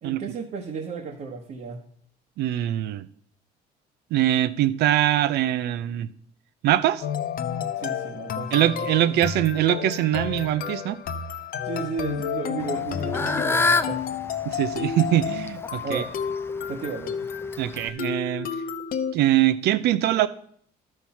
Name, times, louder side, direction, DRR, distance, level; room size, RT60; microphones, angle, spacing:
voice 1, 0.0-1.8 7.7-9.2 11.6-14.1 15.8-16.1 16.7-17.3, right 5 dB, 55° right, -1 dB, 1.3 m, -34 dB
voice 2, 2.4-3.1 4.1-6.1 6.6-7.0 8.5-11.0 14.5-16.0 17.6-18.5 19.1-20.3, right 13 dB, 75° right, 15 dB, 0.6 m, -23 dB
sound 1, 7.0-19.1, left 8 dB, 60° left, 0.8 m, -31 dB
Fowl / Bird, 12.6-17.9, left 3 dB, 15° left, 0.5 m, -28 dB
12.0 x 4.6 x 5.7 m, 0.63 s
cardioid pair, 110°, 17 cm